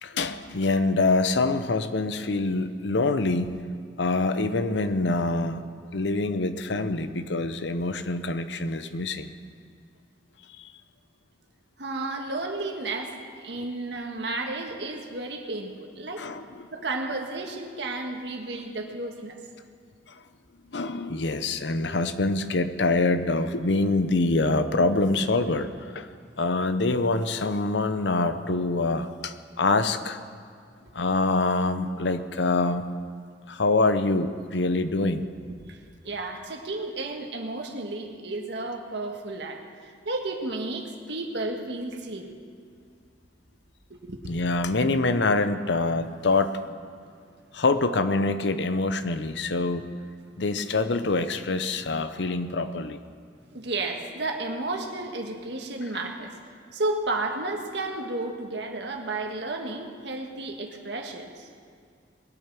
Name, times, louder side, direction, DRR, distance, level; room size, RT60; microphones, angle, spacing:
voice 1, 0.0-3.6 4.0-5.6 5.9-9.3 10.6-10.7 16.2-16.7 20.7-26.1 26.4-30.2 30.9-32.9 33.5-35.3 44.3-46.6 47.5-49.9 50.4-53.0, left 3 dB, 75° left, 11 dB, 0.8 m, -25 dB
voice 2, 11.8-13.1 13.4-16.2 16.7-19.4 35.7-35.8 36.0-42.3 43.9-44.2 47.3-47.5 53.5-61.5, right 2 dB, 70° right, 2 dB, 1.6 m, -32 dB
20.5 x 8.8 x 6.1 m, 2.2 s
head